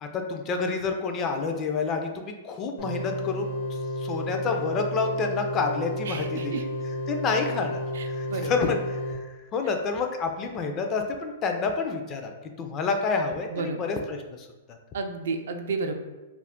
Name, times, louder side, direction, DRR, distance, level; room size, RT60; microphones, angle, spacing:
voice 1, 0.0-3.5 4.0-6.7 7.1-12.3 12.6-14.8, left 4 dB, 30° left, 4 dB, 0.3 m, -29 dB
sound 1, 2.8-9.1, equal, 85° left, 0.7 m, -32 dB
voice 2, 6.1-6.6 8.0-8.5 13.5-13.8 14.9-15.9, right 4 dB, 75° right, 6 dB, 0.3 m, -32 dB
2.3 x 2.1 x 3.5 m, 1.2 s
hypercardioid pair, 135°, 0 cm